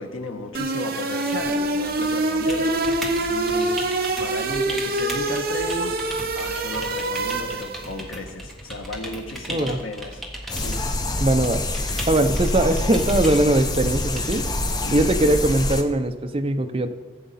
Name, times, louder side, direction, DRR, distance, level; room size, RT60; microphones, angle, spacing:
voice 1, 0.0-2.9 3.3-3.9 4.2-6.0 6.3-10.2 10.6-10.8 14.8-15.1, left 2 dB, 85° left, 4 dB, 1.2 m, -34 dB
sound 1, 0.5-8.0, right 2 dB, 45° right, 0.9 m, -25 dB
sound 2, 1.3-14.4, equal, ahead, 1.3 m, -38 dB
voice 2, 9.5-9.8 11.2-11.6 12.1-14.4 14.9-16.9, right 1 dB, 25° right, 7 dB, 0.6 m, -21 dB
sound 3, 10.5-15.8, left 1 dB, 20° left, 0.6 m, -26 dB
15.5 x 8.0 x 4.1 m, 1.4 s
head